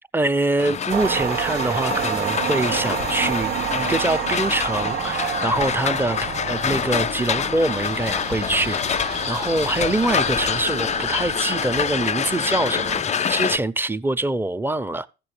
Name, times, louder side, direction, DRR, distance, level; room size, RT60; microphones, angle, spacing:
voice 1, 0.1-6.2 6.5-15.1, right 2 dB, 10° right, 0.7 m, -24 dB
sound 1, 0.6-13.6, left 7 dB, 35° left, 0.4 m, -26 dB
sound 2, 0.9-13.0, right 10 dB, 50° right, 0.4 m, -30 dB
14.5 x 6.9 x 3.3 m
supercardioid pair, 65°, 21 cm